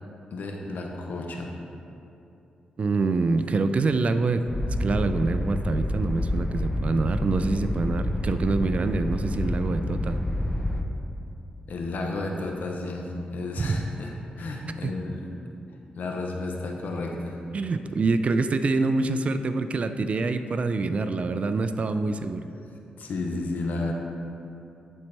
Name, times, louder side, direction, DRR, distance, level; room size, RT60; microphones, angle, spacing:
voice 1, 0.3-1.6 11.7-15.3 16.0-17.4 21.9-22.0 23.0-23.9, left 2 dB, 75° left, 1 dB, 0.7 m, -32 dB
voice 2, 2.8-4.4 4.7-10.2 13.6-13.9 14.8-14.9 17.5-22.4, right 3 dB, 45° right, 9 dB, 0.3 m, -26 dB
sound 1, 4.5-10.8, left 1 dB, 20° left, 0.6 m, -28 dB
11.5 x 4.3 x 3.3 m, 2.7 s
cardioid pair, 85°, 3 cm